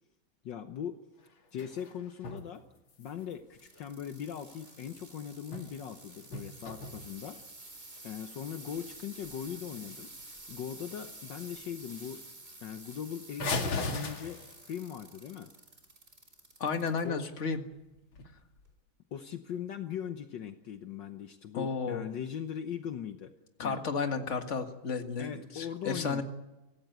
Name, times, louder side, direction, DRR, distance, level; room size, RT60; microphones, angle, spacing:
voice 1, 0.4-1.0 1.5-2.6 3.0-7.4 8.0-10.1 10.5-12.3 12.6-15.5 17.0-17.2 19.1-23.3 23.6-23.8 25.2-26.2, left 9 dB, 65° left, 8 dB, 1.6 m, -40 dB
sound 1, 1.2-2.5 2.8-4.7 5.3-6.0 6.2-7.6 8.2-8.3 8.7-8.9 9.3-9.5 9.7-10.2 10.6-11.1 11.4-11.5 11.8-11.9 12.2-12.3 13.4-14.8 18.0-18.7, left 3 dB, 85° left, 3.1 m, -39 dB
sound 2, 3.5-17.0 17.5-18.0 18.7-18.8, right 2 dB, 30° right, 4.2 m, -50 dB
voice 2, 16.6-17.6 21.5-22.1 23.6-26.2, left 5 dB, 35° left, 6 dB, 2.0 m, -33 dB
24.0 x 17.0 x 9.3 m, 1.0 s
omnidirectional pair, 2.2 m